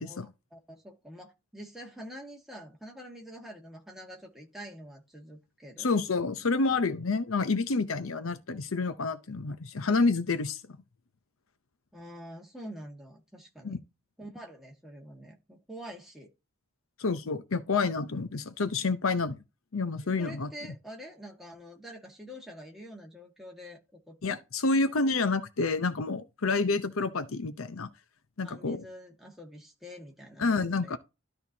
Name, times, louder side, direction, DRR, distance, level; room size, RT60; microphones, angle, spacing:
voice 1, 0.0-6.0 11.9-13.8 14.2-16.3 20.2-24.4 28.4-31.0, equal, ahead, 1.7 m, -46 dB
voice 2, 5.8-10.6 13.6-13.8 17.0-19.4 19.7-20.5 24.2-27.9 28.4-28.8 30.4-31.0, left 3 dB, 75° left, 0.7 m, -28 dB
13.0 x 4.4 x 2.8 m
head